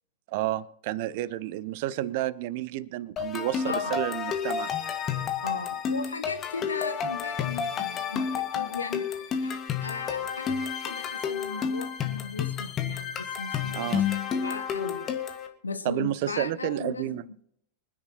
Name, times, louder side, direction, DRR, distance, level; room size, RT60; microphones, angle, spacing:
voice 1, 0.3-4.7 13.7-14.1 15.8-17.2, right 14 dB, 50° right, 0.6 m, -30 dB
sound 1, 3.2-15.5, left 7 dB, 30° left, 1.8 m, -31 dB
voice 2, 5.4-14.0 14.3-15.2 15.6-17.3, left 4 dB, 75° left, 0.8 m, -37 dB
25.0 x 9.9 x 3.0 m
figure-of-eight pair, 90°, 0 cm